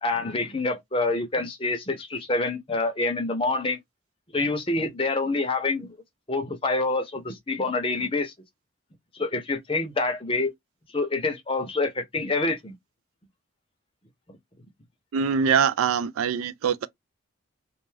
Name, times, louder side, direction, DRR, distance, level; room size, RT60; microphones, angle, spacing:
voice 1, 0.0-3.8 4.3-6.0 6.3-8.3 9.1-10.5 10.9-12.7, left 3 dB, 25° left, 0.6 m, -27 dB
voice 2, 15.1-16.9, right 7 dB, 85° right, 0.3 m, -23 dB
2.5 x 2.3 x 3.1 m
head